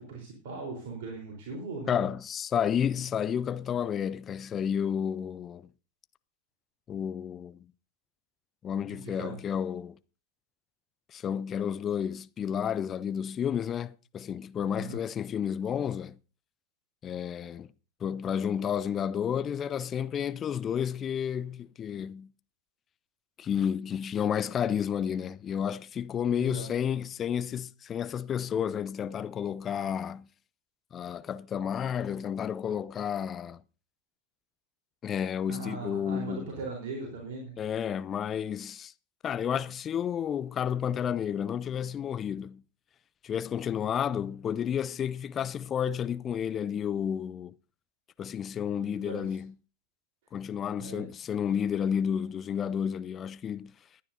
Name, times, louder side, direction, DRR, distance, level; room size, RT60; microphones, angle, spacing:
voice 1, 0.1-2.0 8.9-9.4 14.8-15.0 26.4-26.7 35.5-37.5 48.8-49.4 50.8-51.1, right 3 dB, 50° right, 3.9 m, -39 dB
voice 2, 1.9-5.7 6.9-7.6 8.6-10.0 11.1-16.2 17.0-17.7 18.0-22.3 23.4-30.3 30.9-33.6 35.0-36.5 37.6-38.9 39.2-42.6 43.2-47.5 48.2-49.5 50.3-53.7, left 8 dB, 25° left, 0.5 m, -31 dB
21.0 x 9.5 x 2.7 m
figure-of-eight pair, 90°, 0 cm